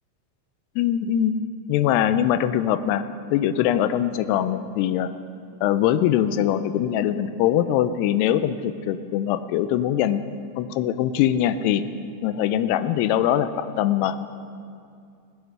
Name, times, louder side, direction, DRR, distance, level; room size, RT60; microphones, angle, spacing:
voice 1, 0.8-1.4 1.7-3.0 3.3-5.1 5.6-10.2 10.6-11.8 12.2-14.2, left 11 dB, 80° left, 12 dB, 2.6 m, -22 dB
20.0 x 8.0 x 6.6 m, 2.4 s
omnidirectional pair, 4.9 m